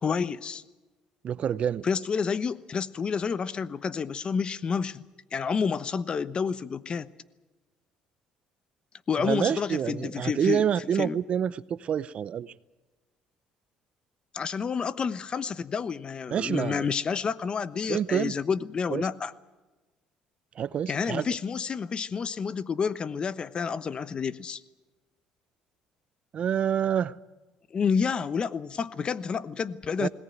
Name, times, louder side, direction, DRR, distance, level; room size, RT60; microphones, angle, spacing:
voice 1, 0.0-0.6 1.8-5.0 5.3-7.1 9.1-10.6 11.0-11.2 14.3-19.3 20.9-24.6 27.7-30.1, left 6 dB, 40° left, 1.0 m, -29 dB
voice 2, 1.2-1.9 9.2-12.5 16.3-16.9 17.9-18.3 18.9-19.1 20.6-21.3 26.3-27.1 30.0-30.1, right 9 dB, 50° right, 0.6 m, -27 dB
20.5 x 18.0 x 9.3 m
supercardioid pair, 85°, 3 cm